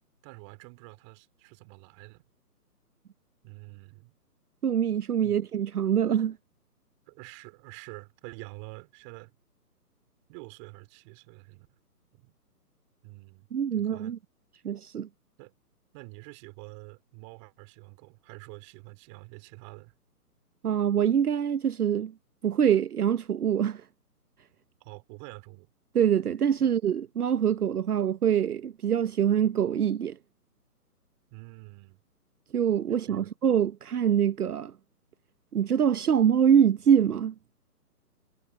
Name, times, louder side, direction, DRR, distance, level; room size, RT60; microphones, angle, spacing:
voice 1, 0.2-2.2 3.4-4.1 5.2-5.4 7.1-9.3 10.3-11.7 12.1-12.3 13.0-13.5 13.7-14.1 15.4-15.5 15.9-19.9 24.8-25.7 26.6-26.7 31.3-32.0 33.1-33.3, right 28 dB, 15° right, 3.2 m, -47 dB
voice 2, 4.6-6.4 13.5-14.2 14.6-15.1 20.6-22.1 22.4-23.8 25.9-30.2 32.5-34.7 35.5-37.3, right 8 dB, 65° right, 0.9 m, -24 dB
hypercardioid pair, 165°, 48 cm